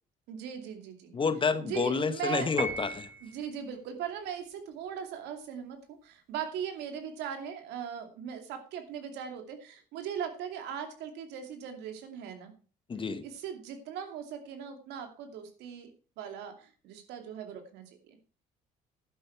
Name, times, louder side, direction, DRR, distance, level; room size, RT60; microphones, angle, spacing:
voice 1, 0.3-1.1 1.6-2.5 3.2-12.5 13.2-18.2, right 8 dB, 90° right, 2.5 m, -39 dB
voice 2, 1.1-3.1 12.9-13.2, left 5 dB, 30° left, 1.1 m, -29 dB
Piano, 2.6-3.5, right 2 dB, 15° right, 3.8 m, -36 dB
11.0 x 9.1 x 4.6 m
cardioid pair, 110°, 17 cm